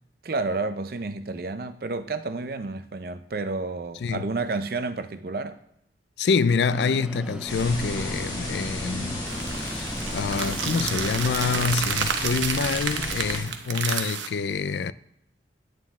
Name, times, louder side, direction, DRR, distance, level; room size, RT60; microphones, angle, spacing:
voice 1, 0.2-5.6, right 3 dB, 55° right, 0.5 m, -30 dB
voice 2, 6.2-9.3 9.5-14.9, left 5 dB, 65° left, 0.4 m, -26 dB
sound 1, 6.7-11.8, equal, 5° right, 0.4 m, -38 dB
sound 2, 7.4-13.4, left 1 dB, 20° left, 3.1 m, -33 dB
sound 3, 9.3-14.3, right 7 dB, 85° right, 0.8 m, -30 dB
9.1 x 9.1 x 3.6 m
head